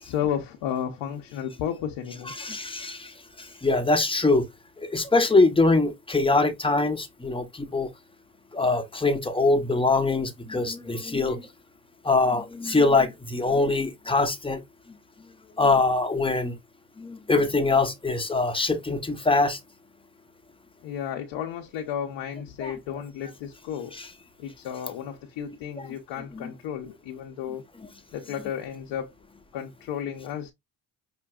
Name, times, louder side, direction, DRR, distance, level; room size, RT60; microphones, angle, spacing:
voice 1, 0.0-2.3 20.8-24.0 24.4-27.6 28.1-29.1 29.5-30.5, left 9 dB, 75° left, 0.8 m, -33 dB
voice 2, 2.4-4.5 4.8-7.9 8.5-11.5 12.0-14.6 15.6-16.6 17.0-19.6 22.6-22.7 25.8-25.9 26.3-26.5, left 3 dB, 10° left, 0.7 m, -23 dB
5.7 x 2.5 x 2.3 m
supercardioid pair, 80°, 44 cm